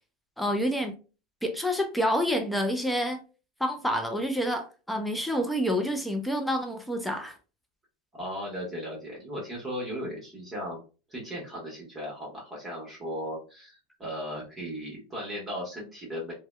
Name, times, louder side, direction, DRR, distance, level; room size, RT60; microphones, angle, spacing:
voice 1, 0.4-1.0 1.4-3.2 3.6-7.4, equal, ahead, 0.4 m, -28 dB
voice 2, 8.1-10.8 11.1-16.3, equal, 15° right, 1.2 m, -36 dB
2.6 x 2.1 x 2.2 m
hypercardioid pair, 110°, 0 cm